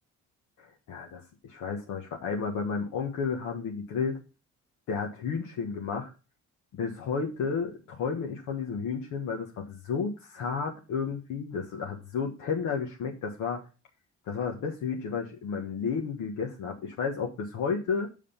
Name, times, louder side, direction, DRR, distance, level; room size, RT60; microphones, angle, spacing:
voice 1, 0.6-4.2 4.9-6.1 6.7-13.6 14.3-18.1, left 5 dB, 85° left, 1 dB, 1.4 m, -32 dB
7.4 x 5.1 x 5.6 m, 0.32 s
cardioid pair, 90°, 30 cm